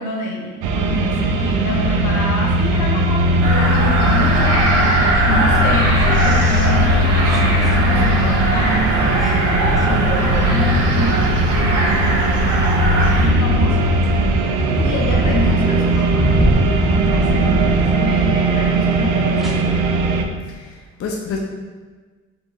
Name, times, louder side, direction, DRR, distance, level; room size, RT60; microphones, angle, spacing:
voice 1, 0.0-4.9 5.3-9.5 9.8-12.6 13.2-13.9 14.8-16.3 16.9-19.8, left 1 dB, 80° left, -1 dB, 1.1 m, -26 dB
sound 1, 0.6-20.2, right 1 dB, 85° right, 0.5 m, -18 dB
sound 2, 3.4-13.3, right 1 dB, 55° right, 1.5 m, -20 dB
sound 3, 5.7-6.4 7.3-7.8 9.0-9.3 9.6-18.4 19.4-19.5, equal, ahead, 0.8 m, -24 dB
voice 2, 20.4-21.4, left 5 dB, 50° left, 0 dB, 0.6 m, -29 dB
4.5 x 2.9 x 4.0 m, 1.4 s
cardioid pair, 90°, 30 cm